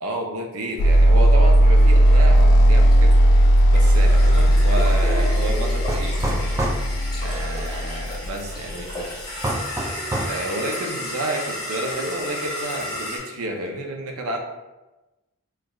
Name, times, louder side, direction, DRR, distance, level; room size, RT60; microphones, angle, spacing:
voice 1, 0.0-3.2 3.7-6.5 7.2-9.2 10.3-14.4, right 2 dB, 75° right, 3 dB, 0.5 m, -30 dB
sound 1, 0.8-8.9, equal, 80° left, 0.3 m, -16 dB
sound 2, 0.8-13.2, left 1 dB, 20° left, 0.9 m, -33 dB
sound 3, 5.9-6.8 9.4-10.4, right 1 dB, 15° right, 0.3 m, -26 dB
4.4 x 2.3 x 2.3 m, 1.1 s
head